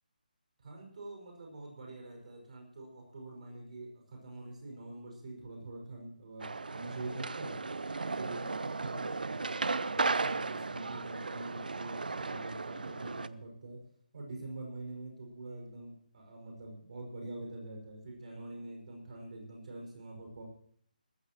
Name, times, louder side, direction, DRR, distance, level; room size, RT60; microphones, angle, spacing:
voice 1, 0.6-7.5 8.1-13.8 14.1-20.4, right 2 dB, 50° right, 0 dB, 5.9 m, -45 dB
sound 1, 6.4-13.3, right 3 dB, 70° right, 0.6 m, -35 dB
19.5 x 14.5 x 3.1 m, 0.63 s
figure-of-eight pair, 150°, 5 cm